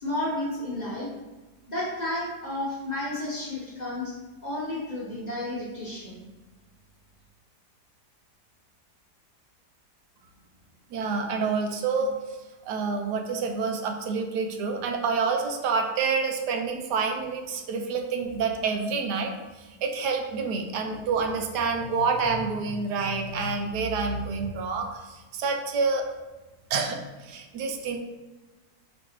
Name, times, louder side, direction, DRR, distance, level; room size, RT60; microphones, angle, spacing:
voice 1, 0.0-1.1 1.7-4.2 4.4-6.2, left 1 dB, 35° left, -7 dB, 0.8 m, -32 dB
voice 2, 10.9-12.1 12.7-19.3 19.8-26.0 26.7-28.0, right 4 dB, 85° right, 3 dB, 1.2 m, -28 dB
5.1 x 3.1 x 3.0 m, 1.2 s
omnidirectional pair, 1.8 m